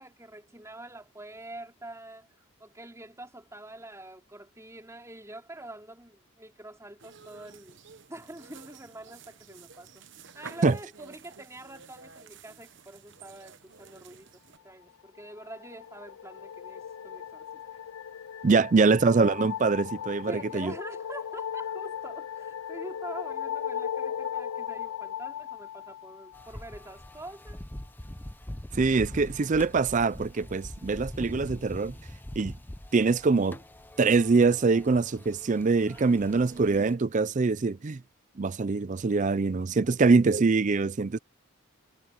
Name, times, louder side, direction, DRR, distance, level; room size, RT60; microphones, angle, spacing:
voice 1, 0.0-2.3 2.6-7.8 8.1-17.8 18.7-18.9 20.3-27.7 35.9-36.5 39.8-40.0, right 1 dB, 15° right, 3.7 m, -46 dB
sound 1, 7.0-14.6, right 5 dB, 55° right, 1.1 m, -51 dB
sound 2, 15.1-26.6, left 9 dB, 80° left, 0.4 m, -37 dB
voice 2, 18.4-20.7 28.7-31.9 32.4-32.5 32.9-33.6 34.0-38.0 38.4-41.2, right 4 dB, 35° right, 0.4 m, -24 dB
sound 3, 26.3-36.9, left 1 dB, 10° left, 0.6 m, -43 dB
head